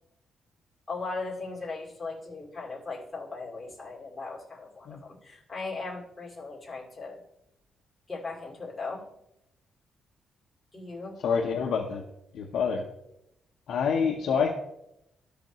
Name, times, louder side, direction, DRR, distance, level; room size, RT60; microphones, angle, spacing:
voice 1, 0.9-7.2 8.1-9.0 10.7-11.2, left 3 dB, 10° left, -5 dB, 2.4 m, -38 dB
voice 2, 11.2-12.0 12.3-12.9 13.7-14.5, left 6 dB, 65° left, 1 dB, 0.7 m, -27 dB
13.5 x 5.1 x 3.0 m, 0.83 s
cardioid pair, 140°, 0 cm